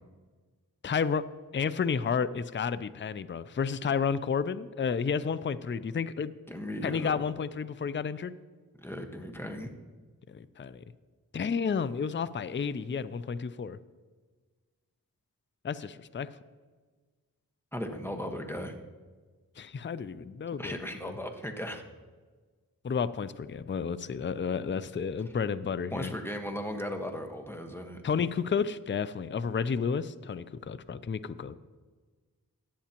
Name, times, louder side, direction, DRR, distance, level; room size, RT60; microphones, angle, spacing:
voice 1, 0.8-1.2 1.5-6.3 6.8-8.3 10.3-10.8 11.3-13.8 15.6-16.3 19.6-21.2 22.8-26.1 28.0-31.6, left 6 dB, 30° left, 15 dB, 0.4 m, -31 dB
voice 2, 6.5-7.2 8.8-9.7 17.7-18.8 20.6-21.8 25.9-28.0, equal, 5° left, 4 dB, 1.3 m, -37 dB
16.0 x 10.0 x 2.9 m, 1.4 s
wide cardioid pair, 45°, 36 cm